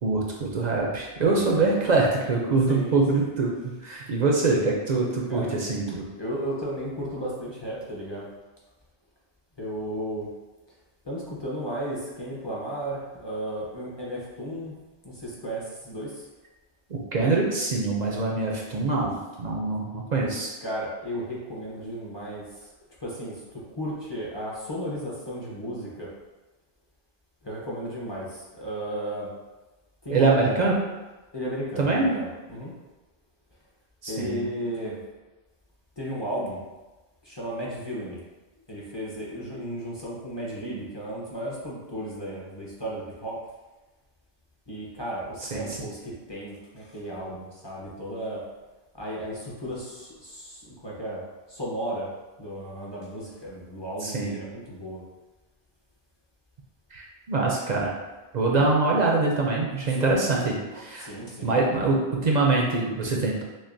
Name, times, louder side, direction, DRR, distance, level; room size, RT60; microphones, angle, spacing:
voice 1, 0.0-6.0 16.9-20.5 30.1-30.7 31.8-32.1 34.0-34.4 45.4-45.9 54.0-54.3 56.9-57.9 58.3-61.1 61.4-63.4, right 3 dB, 50° right, -2 dB, 0.6 m, -24 dB
voice 2, 1.3-1.7 2.7-3.3 5.3-5.6 5.9-8.3 9.6-10.3 11.0-14.7 15.0-16.3 20.6-22.7 23.0-26.1 27.4-29.3 30.0-30.7 31.3-32.7 34.1-35.0 36.0-36.6 37.2-38.2 38.7-43.4 44.7-48.5 48.9-51.2 51.5-52.1 52.4-55.0 58.4-58.7 59.9-60.2 60.7-61.5, right 1 dB, 25° left, -5 dB, 0.7 m, -34 dB
6.0 x 2.1 x 2.5 m, 1.1 s
omnidirectional pair, 1.1 m